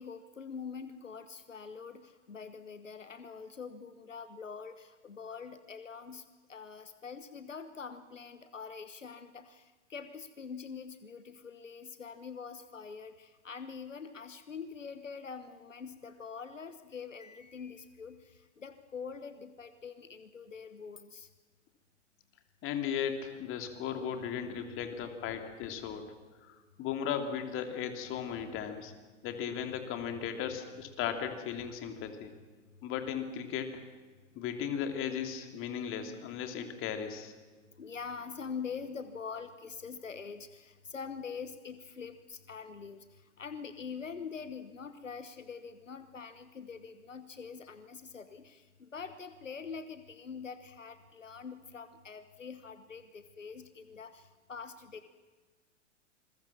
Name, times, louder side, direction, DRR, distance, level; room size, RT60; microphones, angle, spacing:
voice 1, 0.0-21.3 23.9-24.1 24.4-24.6 25.0-25.1 29.1-29.2 32.6-32.8 37.7-55.1, left 5 dB, 80° left, 11 dB, 1.2 m, -44 dB
voice 2, 22.6-26.1 26.4-28.9 29.2-32.3 32.8-33.8 34.3-37.3, left 8 dB, 35° left, 6 dB, 3.2 m, -36 dB
27.5 x 22.0 x 7.3 m, 1.3 s
figure-of-eight pair, 95°, 37 cm